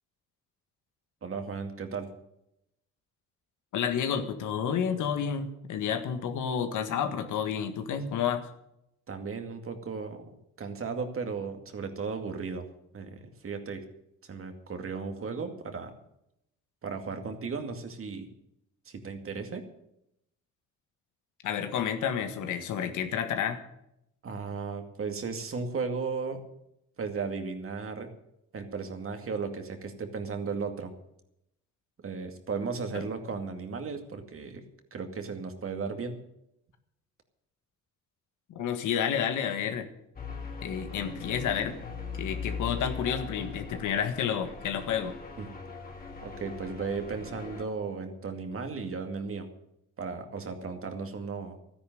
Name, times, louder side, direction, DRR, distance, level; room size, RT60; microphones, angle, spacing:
voice 1, 1.2-2.1 9.1-10.3 10.6-12.7 12.9-13.8 14.3-16.0 16.8-18.3 18.9-19.6 24.2-26.4 27.0-28.1 28.5-30.9 32.0-34.6 34.9-36.2 45.4-45.5 46.2-49.5 50.0-51.6, right 5 dB, 45° right, 5 dB, 2.3 m, -35 dB
voice 2, 3.7-8.5 21.4-23.6 32.9-33.0 38.6-39.9 40.6-41.8 42.2-45.1, left 8 dB, 80° left, 8 dB, 1.7 m, -30 dB
sound 1, 40.2-47.6, left 5 dB, 30° left, 2.9 m, -40 dB
13.0 x 10.0 x 7.8 m, 0.80 s
cardioid pair, 90°, 30 cm